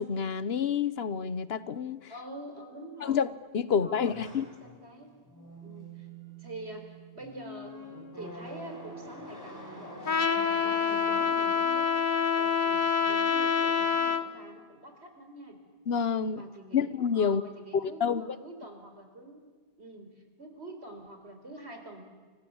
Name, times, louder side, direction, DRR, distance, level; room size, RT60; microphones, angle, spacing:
voice 1, 0.0-2.0 3.0-3.3 3.5-4.4 15.9-16.4 16.7-17.4 17.7-18.2, left 7 dB, 65° left, 15 dB, 1.3 m, -28 dB
voice 2, 2.1-3.3 3.6-5.1 5.6-6.1 6.4-10.2 10.6-15.6 16.3-19.4 19.8-22.0, right 1 dB, 75° right, 5 dB, 4.8 m, -46 dB
sound 1, 4.0-12.1, right 1 dB, 15° left, 5.8 m, -46 dB
Trumpet, 10.1-14.3, left 6 dB, 50° left, 1.4 m, -26 dB
29.5 x 25.5 x 7.2 m, 1.5 s
omnidirectional pair, 1.1 m